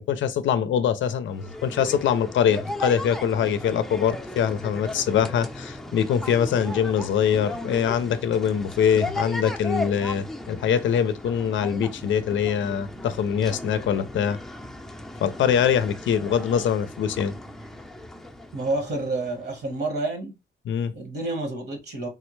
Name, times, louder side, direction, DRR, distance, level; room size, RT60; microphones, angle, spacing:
voice 1, 0.0-14.4 15.2-17.3 20.7-20.9, left 8 dB, 70° left, 0.4 m, -23 dB
sound 1, 1.3-19.8, left 1 dB, ahead, 0.6 m, -36 dB
voice 2, 18.5-20.3 20.9-22.1, right 2 dB, 55° right, 1.3 m, -29 dB
3.5 x 2.1 x 3.1 m
cardioid pair, 90°, 20 cm